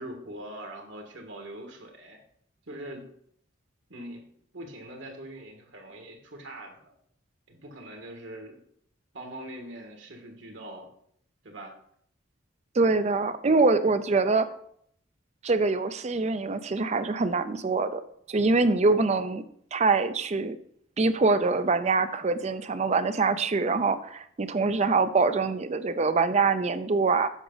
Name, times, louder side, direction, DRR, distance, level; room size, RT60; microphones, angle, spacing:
voice 1, 0.0-2.2 2.6-3.1 3.9-4.2 4.5-6.9 7.5-8.6 9.1-10.9 11.4-11.8, right 1 dB, 70° right, 2 dB, 1.7 m, -42 dB
voice 2, 12.7-14.5 15.4-18.0 18.3-19.4 19.7-20.6 21.0-27.3, right 3 dB, 35° right, 11 dB, 0.4 m, -24 dB
8.1 x 5.9 x 3.9 m, 0.65 s
head